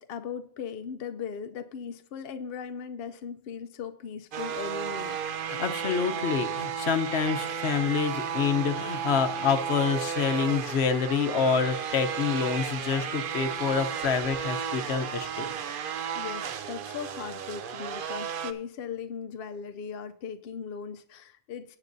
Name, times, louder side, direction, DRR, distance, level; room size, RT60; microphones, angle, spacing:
voice 1, 0.0-5.2 16.1-21.8, left 7 dB, 70° left, 8 dB, 0.8 m, -38 dB
sound 1, 4.3-18.5, right 8 dB, 60° right, 0.8 m, -33 dB
voice 2, 5.5-15.5, left 6 dB, 85° left, 9 dB, 1.1 m, -27 dB
17.0 x 8.2 x 2.6 m, 0.64 s
omnidirectional pair, 1.1 m